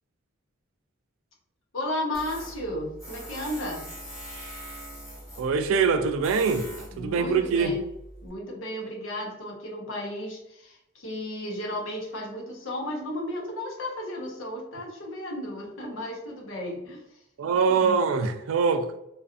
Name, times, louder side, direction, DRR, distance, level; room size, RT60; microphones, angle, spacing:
voice 1, 1.7-3.8 6.9-7.8 8.2-17.2, left 1 dB, 75° left, 0.8 m, -34 dB
Tools, 2.1-8.3, equal, 15° left, 1.0 m, -43 dB
voice 2, 5.4-7.7 17.4-18.9, right 5 dB, 80° right, 0.3 m, -24 dB
2.5 x 2.4 x 2.4 m
head